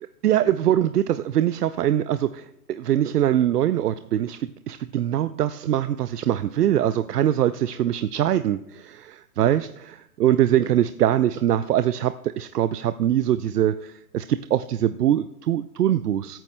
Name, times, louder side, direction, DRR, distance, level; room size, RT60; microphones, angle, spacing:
voice 1, 0.2-16.4, right 11 dB, 75° right, 13 dB, 0.6 m, -23 dB
22.5 x 9.0 x 2.2 m, 0.82 s
hypercardioid pair, 150°, 47 cm